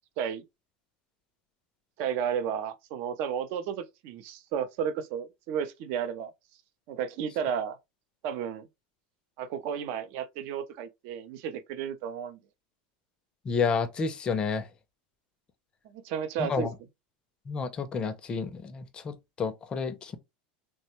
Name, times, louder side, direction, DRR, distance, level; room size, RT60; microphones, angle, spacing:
voice 1, 2.0-6.3 6.9-7.8 8.2-8.7 9.4-12.4 15.8-16.7, right 8 dB, 55° right, 0.5 m, -33 dB
voice 2, 13.5-14.7 16.4-16.7 17.5-20.2, left 5 dB, 20° left, 0.5 m, -30 dB
3.1 x 2.1 x 2.9 m
supercardioid pair, 140°, 4 cm